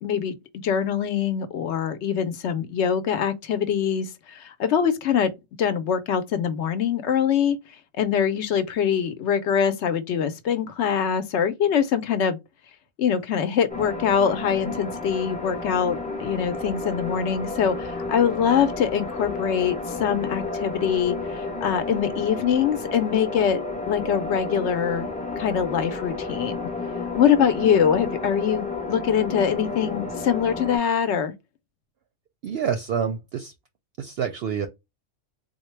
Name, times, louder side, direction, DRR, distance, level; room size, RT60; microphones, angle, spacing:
voice 1, 0.0-5.3 5.6-7.6 8.0-12.4 13.0-23.6 23.9-25.1 25.4-26.7 27.1-31.3, left 8 dB, 70° left, 0.9 m, -23 dB
sound 1, 13.7-30.8, left 3 dB, 10° left, 0.7 m, -32 dB
voice 2, 32.4-33.5 34.0-34.7, right 7 dB, 65° right, 0.7 m, -27 dB
3.8 x 2.1 x 3.1 m
omnidirectional pair, 1.3 m